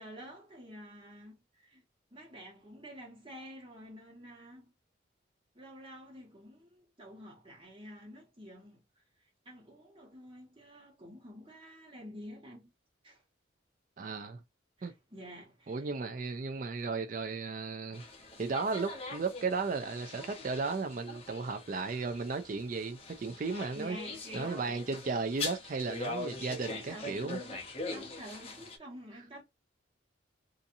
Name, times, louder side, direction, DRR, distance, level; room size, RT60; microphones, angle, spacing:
voice 1, 0.0-1.8 2.1-4.7 5.5-12.7 13.0-13.2 14.8-16.0 23.7-24.8 26.6-27.6 27.9-29.4, equal, 25° right, 1.2 m, -49 dB
voice 2, 14.0-14.4 14.8-14.9 15.7-18.0 18.4-24.0 24.3-27.4, right 4 dB, 40° right, 0.3 m, -35 dB
sound 1, 17.9-28.8, left 3 dB, 30° left, 0.7 m, -43 dB
2.7 x 2.5 x 2.5 m
head